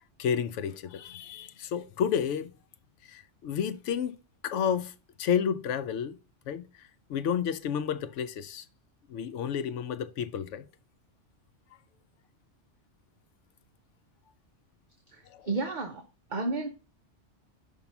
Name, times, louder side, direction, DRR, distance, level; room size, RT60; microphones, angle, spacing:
voice 1, 0.2-2.5 3.1-4.2 4.4-4.9 5.2-6.2 6.5-6.7 7.1-8.7 9.1-10.7 15.3-15.5, left 8 dB, 80° left, 0.9 m, -31 dB
voice 2, 15.1-16.0 16.3-16.7, right 3 dB, 45° right, 1.0 m, -32 dB
5.5 x 4.6 x 5.8 m
omnidirectional pair, 1.2 m